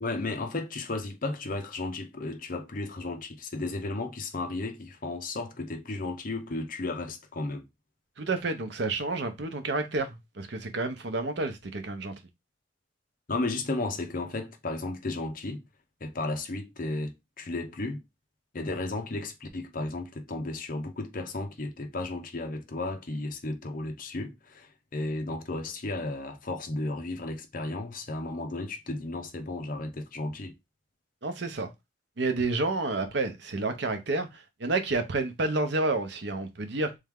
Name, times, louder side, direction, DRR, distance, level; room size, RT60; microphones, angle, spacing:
voice 1, 0.0-7.6 13.3-15.6 16.0-18.0 18.5-30.5, left 2 dB, 45° left, 0.7 m, -34 dB
voice 2, 8.2-12.1 31.2-31.7 32.2-37.0, right 2 dB, 65° right, 0.8 m, -30 dB
3.5 x 3.2 x 3.6 m
head